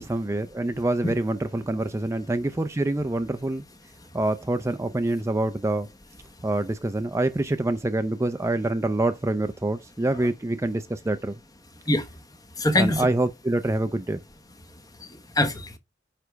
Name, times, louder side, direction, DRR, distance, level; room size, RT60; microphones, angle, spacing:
voice 1, 0.0-3.6 4.1-5.9 6.4-11.4 12.7-14.2, right 2 dB, 15° right, 0.5 m, -26 dB
voice 2, 11.9-13.1 14.7-15.8, left 1 dB, 20° left, 1.0 m, -26 dB
9.4 x 3.4 x 5.0 m
head